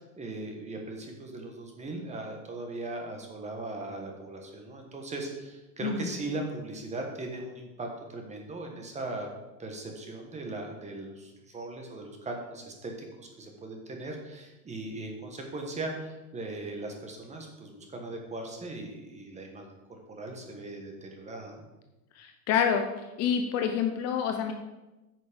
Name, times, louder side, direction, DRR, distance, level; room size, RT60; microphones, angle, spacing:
voice 1, 0.0-9.3 9.6-12.9 13.2-19.6 20.1-21.6, right 2 dB, 15° right, 2 dB, 1.5 m, -39 dB
voice 2, 5.8-6.1 22.2-22.8 23.2-24.5, left 7 dB, 35° left, 5 dB, 0.8 m, -27 dB
9.5 x 6.4 x 5.3 m, 1.0 s
supercardioid pair, 145°, 44 cm